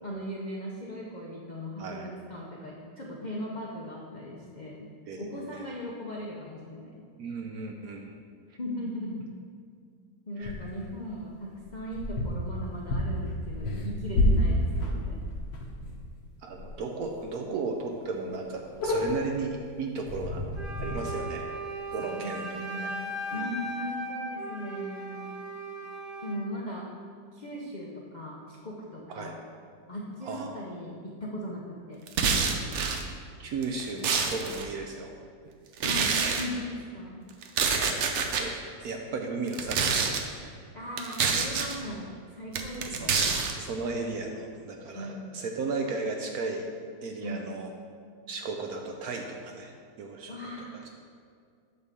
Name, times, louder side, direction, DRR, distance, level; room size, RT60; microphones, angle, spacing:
voice 1, 0.0-4.9 5.2-6.9 8.6-9.3 10.3-15.2 22.0-25.2 26.2-26.9 27.3-29.4 29.9-32.0 35.8-36.1 36.4-37.3 40.7-43.2 44.9-45.3 47.2-47.5 50.3-50.9, equal, 55° left, -3 dB, 0.5 m, -38 dB
voice 2, 5.1-5.7 7.2-8.1 8.5-8.6 10.4-10.5 16.4-20.4 20.8-21.5 21.9-22.9 23.3-23.6 29.1-29.3 30.2-30.5 33.4-35.1 36.0-36.4 37.7-38.0 38.4-38.5 38.8-40.2 42.9-43.1 43.6-46.7 47.0-47.7 48.3-49.7 50.0-50.8, right 3 dB, 70° right, 2 dB, 0.9 m, -35 dB
sound 1, 10.4-10.9 11.6-16.1 16.5-16.8 17.0-17.1 17.6-17.7 17.9-18.0 18.3-19.5 20.1-20.9, left 1 dB, 75° left, 1.7 m, -29 dB
Wind instrument woodwind instrument, 20.5-26.4, right 1 dB, 35° right, 1.0 m, -37 dB
sound 2, 32.1-33.0 33.6-34.7 35.8-36.4 37.4-38.4 39.5-40.2 41.0-41.8 42.5-43.5, right 5 dB, 85° right, 0.6 m, -27 dB
8.1 x 3.5 x 6.6 m, 2.1 s
omnidirectional pair, 2.0 m